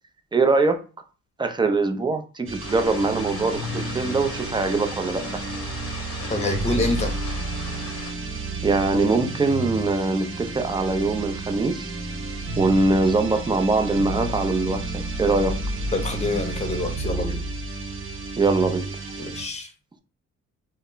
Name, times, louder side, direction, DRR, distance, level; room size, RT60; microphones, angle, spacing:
voice 1, 0.3-0.8 1.4-5.2 8.6-11.9 12.6-15.5 18.4-18.9, right 3 dB, 15° right, 0.4 m, -22 dB
sound 1, 2.5-19.5, right 2 dB, 45° right, 0.7 m, -31 dB
sound 2, 2.6-8.1, left 4 dB, 65° left, 0.8 m, -38 dB
voice 2, 6.3-7.1 15.9-17.4 19.2-19.7, left 2 dB, 20° left, 0.7 m, -26 dB
2.1 x 2.0 x 3.7 m
cardioid pair, 90°, 30 cm